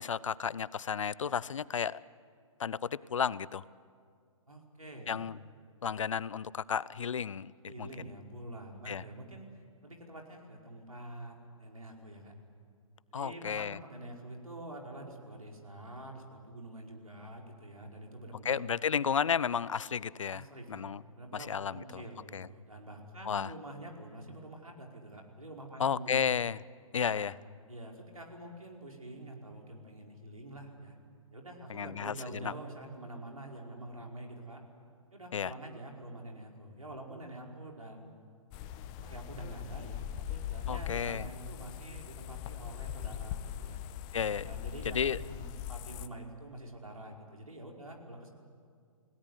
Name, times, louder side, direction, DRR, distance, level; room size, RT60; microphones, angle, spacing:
voice 1, 0.0-2.0 2.6-3.6 5.1-5.4 5.8-8.1 8.9-9.0 13.1-13.8 18.4-20.4 20.7-21.0 21.5-22.0 22.3-22.5 23.3-23.5 25.8-26.6 26.9-27.4 31.7-32.1 32.4-32.5 35.3-35.5 40.7-41.3 44.1-44.5 44.8-45.2, left 7 dB, 65° left, 20 dB, 0.7 m, -32 dB
voice 2, 4.5-5.2 7.6-9.5 9.8-12.3 13.1-18.7 20.3-26.3 27.1-27.3 27.7-31.0 31.3-34.6 35.1-38.1 39.0-43.8 44.4-48.3, right 1 dB, 90° right, 1 dB, 5.1 m, -46 dB
sound 1, 38.5-46.1, left 10 dB, 25° left, 0.8 m, -41 dB
29.5 x 17.5 x 9.8 m, 2.2 s
figure-of-eight pair, 135°, 18 cm